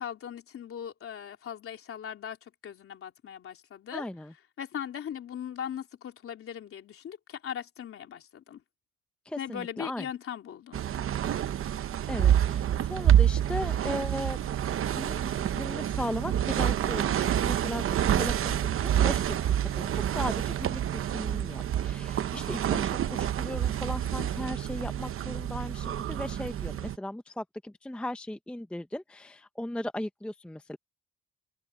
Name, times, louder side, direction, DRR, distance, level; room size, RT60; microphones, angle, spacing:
voice 1, 0.0-4.1 4.6-8.6 9.4-10.8, left 9 dB, 50° left, 3.3 m, -39 dB
voice 2, 3.9-4.3 9.3-10.1 12.1-14.4 14.8-30.8, left 1 dB, 5° left, 0.6 m, -37 dB
sound 1, 10.7-27.0, right 10 dB, 45° right, 0.8 m, -27 dB
open air
cardioid pair, 165°, 29 cm